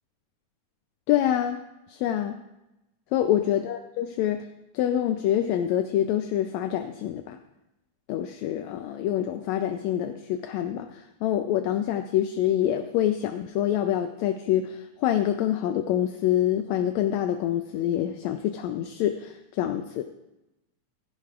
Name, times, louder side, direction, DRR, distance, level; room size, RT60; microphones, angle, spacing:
voice 1, 1.1-1.6 1.9-2.4 3.1-4.4 4.7-7.4 8.1-20.0, left 11 dB, 80° left, 7 dB, 1.6 m, -26 dB
16.0 x 15.5 x 2.4 m, 0.95 s
omnidirectional pair, 3.6 m